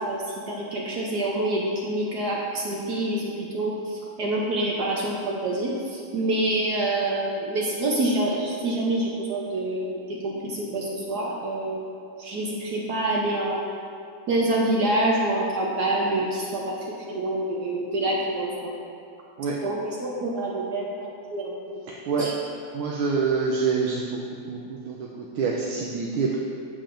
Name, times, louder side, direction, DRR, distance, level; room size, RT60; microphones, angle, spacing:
voice 1, 0.0-11.9 12.2-13.6 14.3-16.7 17.1-18.7 19.6-21.8 22.2-22.3, right 1 dB, 60° right, -3 dB, 1.2 m, -27 dB
voice 2, 21.9-22.3 22.7-24.1 24.5-26.4, right 5 dB, 85° right, -3 dB, 1.5 m, -26 dB
8.6 x 7.4 x 2.6 m, 2.4 s
omnidirectional pair, 2.3 m